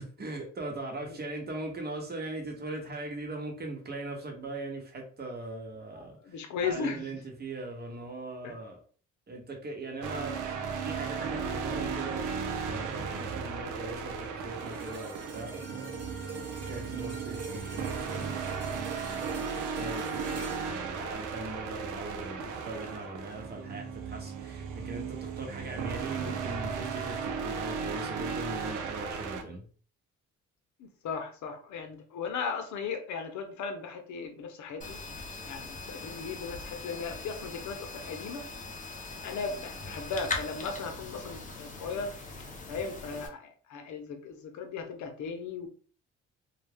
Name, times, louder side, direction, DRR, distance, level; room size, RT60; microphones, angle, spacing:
voice 1, 0.0-8.8 9.3-10.4 10.8-12.3 12.6-16.0 16.6-29.7, right 2 dB, 35° right, 0.9 m, -40 dB
voice 2, 5.9-7.1 8.4-8.6 30.8-35.0 35.4-38.5 39.2-42.2 42.7-45.7, left 5 dB, 70° left, 0.7 m, -37 dB
sound 1, 10.0-29.4, right 5 dB, 85° right, 0.5 m, -36 dB
sound 2, 14.6-22.9 23.4-23.6, right 4 dB, 55° right, 0.9 m, -43 dB
sound 3, 34.8-43.3, left 3 dB, 25° left, 0.6 m, -41 dB
2.3 x 2.1 x 3.3 m
cardioid pair, 90°, 30 cm